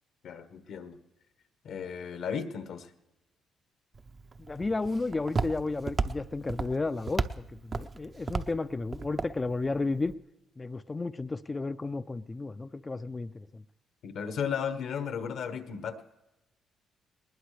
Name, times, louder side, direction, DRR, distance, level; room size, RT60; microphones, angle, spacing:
voice 1, 0.2-1.0 1.6-2.9 14.0-16.1, left 7 dB, 70° left, 10 dB, 1.2 m, -35 dB
Walk footsteps, 3.9-10.1, right 4 dB, 35° right, 0.7 m, -35 dB
voice 2, 4.4-10.1 10.6-13.6, left 3 dB, 25° left, 13 dB, 0.4 m, -33 dB
20.0 x 19.5 x 3.3 m, 1.0 s
cardioid pair, 90°, 0 cm